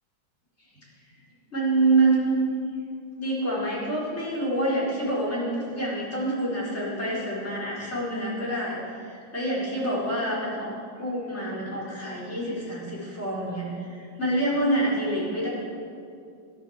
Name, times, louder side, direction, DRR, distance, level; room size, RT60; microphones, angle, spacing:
voice 1, 1.5-2.4 3.2-8.8 9.0-15.5, right 2 dB, 30° left, -7 dB, 5.4 m, -27 dB
14.5 x 11.0 x 7.5 m, 2.4 s
omnidirectional pair, 2.2 m